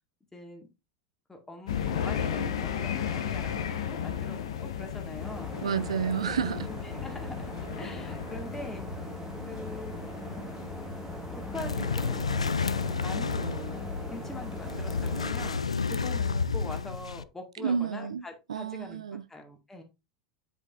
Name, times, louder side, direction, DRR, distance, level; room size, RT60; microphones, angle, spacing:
voice 1, 0.3-0.7 1.3-5.5 6.2-6.4 6.7-7.5 7.8-8.8 9.5-9.9 11.3-12.3 12.8-13.8 14.1-15.6 15.9-19.0 19.3-19.8, left 2 dB, 10° left, 1.8 m, -43 dB
sound 1, 1.7-16.1, left 8 dB, 70° left, 1.0 m, -36 dB
sound 2, 5.2-15.5, right 2 dB, 15° right, 1.1 m, -41 dB
voice 2, 5.6-6.7 17.6-18.2 18.5-19.2, right 7 dB, 75° right, 0.4 m, -30 dB
sound 3, 11.6-17.2, left 5 dB, 85° left, 0.3 m, -31 dB
7.9 x 5.2 x 2.5 m
figure-of-eight pair, 85°, 3 cm